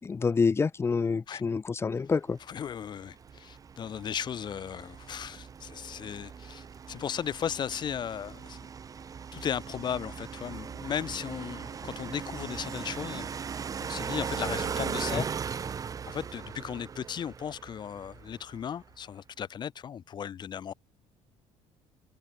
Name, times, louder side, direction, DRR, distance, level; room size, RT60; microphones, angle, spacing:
voice 1, 0.0-2.4 15.1-15.2, left 5 dB, 20° left, 3.9 m, -27 dB
voice 2, 2.5-8.6 9.3-13.3 13.8-15.3 16.1-20.7, left 8 dB, 35° left, 6.4 m, -36 dB
sound 1, 2.5-18.7, right 6 dB, 30° right, 6.9 m, -39 dB
cardioid pair, 160°, 12 cm